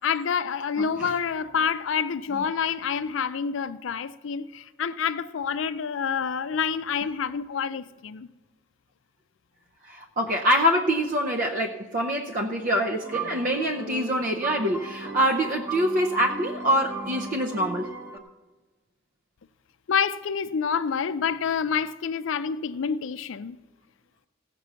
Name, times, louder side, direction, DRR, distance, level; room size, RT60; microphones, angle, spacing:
voice 1, 0.0-8.3 19.9-23.6, left 6 dB, 75° left, 0.4 m, -28 dB
voice 2, 0.8-1.1 9.8-17.9, equal, 45° right, 0.6 m, -25 dB
sound 1, 13.0-18.2, right 4 dB, 10° right, 0.9 m, -36 dB
16.0 x 6.0 x 6.8 m
head